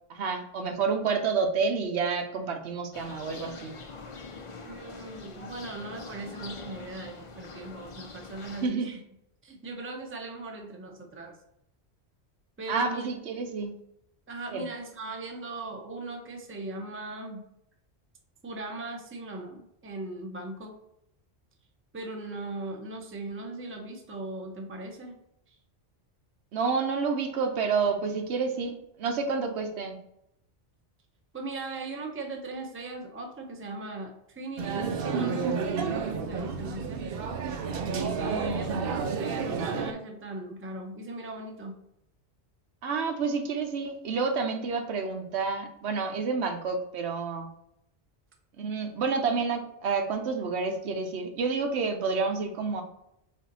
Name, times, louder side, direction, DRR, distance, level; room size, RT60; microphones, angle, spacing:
voice 1, 0.1-3.7 8.6-8.9 12.7-13.7 14.5-14.6 26.5-30.0 42.8-47.5 48.6-52.8, right 5 dB, 85° right, 5 dB, 1.0 m, -29 dB
sound 1, 2.9-8.7, left 3 dB, 45° left, 0.4 m, -44 dB
voice 2, 4.7-9.0 9.4-11.4 12.6-13.1 14.3-17.4 18.4-20.8 21.9-25.1 25.5-25.6 31.3-37.1 38.1-41.7, right 2 dB, 15° right, 1 dB, 0.5 m, -39 dB
sound 2, 34.6-39.9, right 5 dB, 65° right, 0.7 m, -30 dB
4.2 x 2.7 x 3.9 m, 0.77 s
omnidirectional pair, 1.1 m